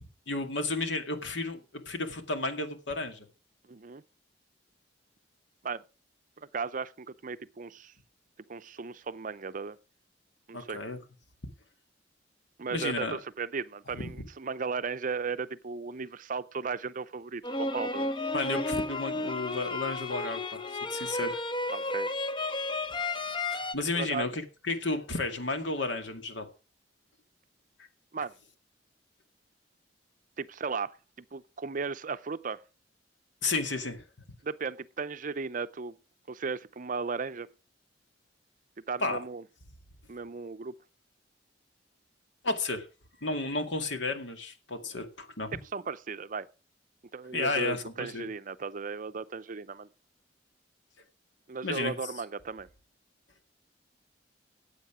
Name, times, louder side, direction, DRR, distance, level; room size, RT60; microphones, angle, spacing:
voice 1, 0.3-3.3 10.5-11.0 12.7-13.2 14.0-14.1 18.3-20.6 20.9-21.4 23.5-26.5 33.4-34.0 39.0-39.2 42.4-42.9 43.2-45.6 47.3-48.3 51.6-51.9, left 3 dB, 85° left, 2.2 m, -32 dB
voice 2, 3.7-4.0 5.6-5.8 6.4-7.9 8.5-9.8 10.5-10.8 12.6-18.1 21.7-22.1 23.8-24.3 28.1-28.3 30.4-31.0 31.3-32.6 34.4-36.0 36.3-37.5 38.9-39.4 40.1-40.8 45.7-46.5 47.1-49.9 51.5-52.7, right 5 dB, 45° right, 0.6 m, -36 dB
sound 1, 17.4-23.7, left 2 dB, 25° left, 0.9 m, -32 dB
15.0 x 8.2 x 4.9 m
head